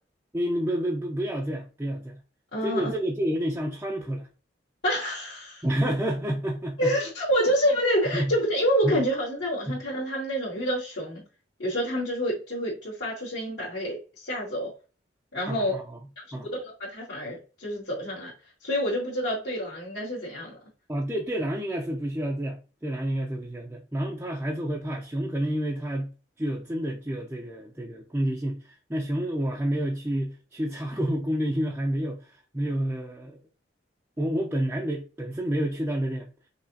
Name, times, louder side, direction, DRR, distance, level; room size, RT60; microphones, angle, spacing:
voice 1, 0.3-2.2 2.6-4.3 5.6-6.9 8.1-8.3 8.8-9.0 9.7-9.8 15.5-16.0 16.3-16.5 20.9-26.1 26.4-33.4 34.2-36.3, equal, 10° right, 0.5 m, -29 dB
voice 2, 2.5-2.9 4.8-5.6 6.8-11.2 11.6-14.7 15.3-15.8 16.2-18.3 18.6-20.6, equal, 65° left, 2.0 m, -28 dB
5.7 x 2.9 x 2.7 m
head